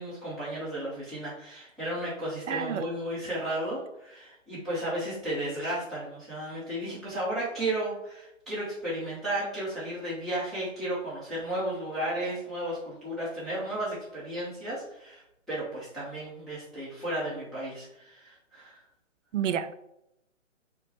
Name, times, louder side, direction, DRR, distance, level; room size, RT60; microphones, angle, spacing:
voice 1, 0.0-15.2 15.5-18.8, right 1 dB, ahead, 0.9 m, -34 dB
voice 2, 2.5-2.8 19.3-19.7, right 8 dB, 70° right, 0.5 m, -29 dB
4.5 x 2.2 x 4.2 m
hypercardioid pair, 155°, 39 cm